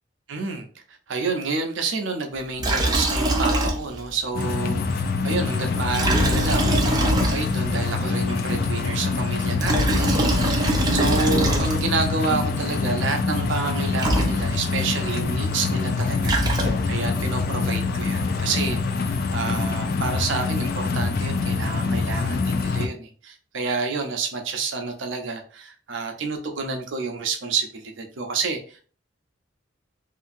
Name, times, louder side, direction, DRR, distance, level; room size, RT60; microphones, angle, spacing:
voice 1, 0.3-28.9, right 4 dB, 75° right, 0.6 m, -29 dB
Liquid, 2.6-4.1 4.4-4.5 5.9-7.8 9.4-12.1 13.7-13.8 14.0-14.8 16.0-17.1, right 1 dB, 20° right, 0.5 m, -23 dB
sound 1, 4.3-22.9, left 4 dB, 55° left, 0.3 m, -25 dB
2.8 x 2.5 x 2.5 m
head